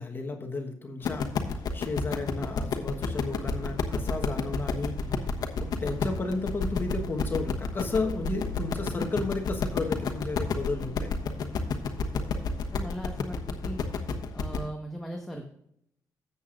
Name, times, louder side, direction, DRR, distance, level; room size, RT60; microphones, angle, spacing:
voice 1, 0.0-5.2 5.6-11.1, left 3 dB, 30° left, 3 dB, 1.2 m, -33 dB
sound 1, 1.0-14.6, left 5 dB, 90° left, 1.2 m, -30 dB
sound 2, 3.3-4.5 5.0-12.6, right 1 dB, 80° right, 1.5 m, -44 dB
voice 2, 12.7-13.8 14.3-15.5, equal, 5° left, 0 dB, 1.2 m, -38 dB
13.5 x 8.1 x 2.5 m, 0.73 s
cardioid pair, 125°, 7 cm